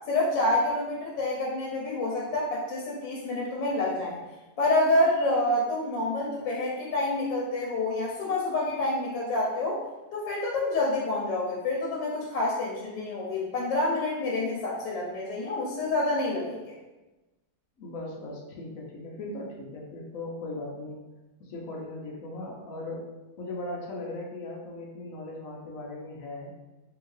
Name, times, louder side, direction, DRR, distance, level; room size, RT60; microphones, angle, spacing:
voice 1, 0.1-4.2 4.6-9.8 10.1-16.7, left 2 dB, 80° left, -4 dB, 1.4 m, -28 dB
voice 2, 17.8-21.0 21.4-23.0 23.4-26.5, left 2 dB, 60° left, -2 dB, 1.0 m, -38 dB
3.5 x 2.8 x 3.1 m, 1.1 s
omnidirectional pair, 1.9 m